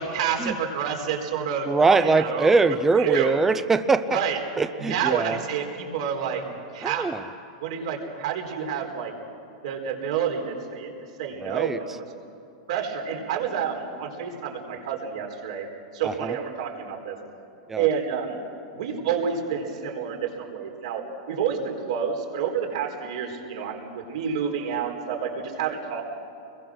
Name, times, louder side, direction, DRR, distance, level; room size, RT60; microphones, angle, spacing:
voice 1, 0.0-2.6 2.9-3.4 4.1-4.4 4.8-6.4 6.7-7.1 7.6-9.1 9.6-10.9 11.2-12.0 12.7-15.7 15.9-17.2 17.8-18.4 18.7-26.0, right 7 dB, 70° right, 1 dB, 4.4 m, -29 dB
voice 2, 1.7-4.2 4.6-5.4 6.8-7.2 8.0-8.1 11.4-11.8 16.0-16.4 17.7-17.9, right 4 dB, 10° right, 12 dB, 0.6 m, -22 dB
26.5 x 22.0 x 6.3 m, 2.7 s
supercardioid pair, 160°, 3 cm